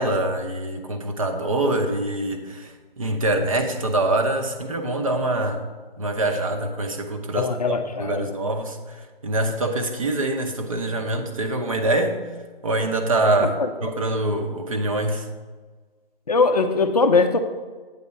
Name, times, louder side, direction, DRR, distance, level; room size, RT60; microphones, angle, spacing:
voice 1, 0.0-5.6 6.0-12.2 12.6-15.3, right 2 dB, 35° right, 5 dB, 0.8 m, -24 dB
voice 2, 7.3-8.3 13.6-13.7 16.3-17.4, left 4 dB, 40° left, 6 dB, 0.5 m, -20 dB
8.4 x 4.1 x 6.9 m, 1.4 s
hypercardioid pair, 165°, 29 cm